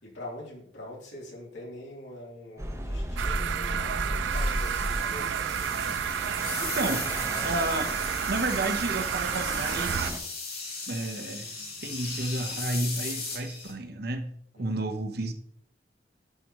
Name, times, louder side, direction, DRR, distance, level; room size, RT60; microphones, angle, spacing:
voice 1, 0.0-5.7 14.5-14.9, left 1 dB, 85° left, 3.2 m, -43 dB
sound 1, 2.6-10.2, equal, 15° right, 0.8 m, -35 dB
sound 2, 3.2-10.1, right 9 dB, 85° right, 0.3 m, -31 dB
sound 3, 4.3-13.7, left 4 dB, 60° left, 3.3 m, -38 dB
voice 2, 6.6-7.1 7.4-8.0 8.3-10.1 10.9-11.5 11.8-14.3 14.6-15.3, right 2 dB, 60° right, 1.0 m, -31 dB
10.5 x 4.9 x 3.1 m
head